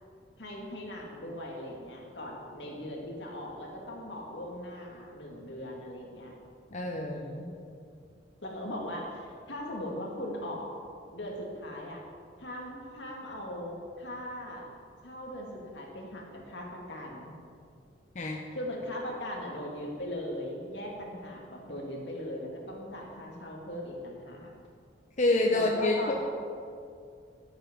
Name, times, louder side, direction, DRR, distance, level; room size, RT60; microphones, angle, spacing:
voice 1, 0.4-6.3 7.0-7.5 8.4-10.7 11.1-12.0 12.4-14.7 15.0-17.3 18.5-24.5 25.5-26.1, left 1 dB, 75° left, -1 dB, 2.3 m, -39 dB
voice 2, 6.7-7.2 18.1-18.4 25.2-26.1, left 2 dB, 45° left, 0 dB, 0.9 m, -27 dB
12.5 x 8.2 x 5.3 m, 2.3 s
head